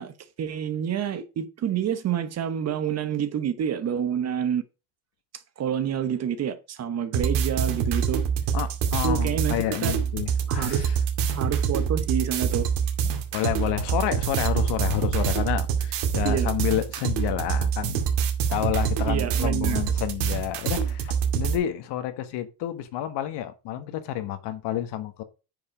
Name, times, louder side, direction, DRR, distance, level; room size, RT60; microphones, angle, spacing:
voice 1, 0.0-4.6 5.6-8.2 9.0-9.9 10.5-10.9 11.3-12.7 16.2-16.5 19.1-19.8, right 8 dB, 35° right, 0.9 m, -28 dB
sound 1, 7.1-21.6, right 7 dB, 60° right, 2.4 m, -26 dB
voice 2, 8.5-11.0 13.3-18.0 18.5-25.2, left 12 dB, 55° left, 1.5 m, -29 dB
9.1 x 5.4 x 5.1 m
cardioid pair, 145°, 47 cm